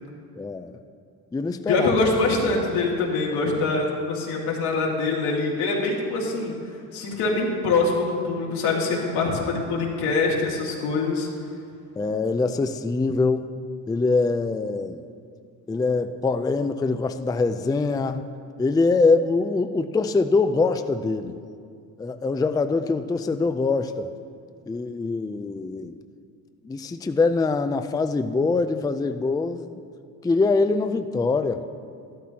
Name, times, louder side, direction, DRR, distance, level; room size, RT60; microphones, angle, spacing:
voice 1, 0.4-0.7 1.3-1.9 12.0-13.5 13.9-15.0 15.7-18.2 18.6-21.4 22.0-24.1 24.7-26.0 26.6-29.7 30.2-31.6, left 3 dB, 10° left, 8 dB, 0.4 m, -23 dB
voice 2, 1.7-6.5 6.9-11.3, left 3 dB, 85° left, -3 dB, 2.2 m, -24 dB
13.0 x 12.5 x 2.9 m, 2.3 s
cardioid pair, 90°, 38 cm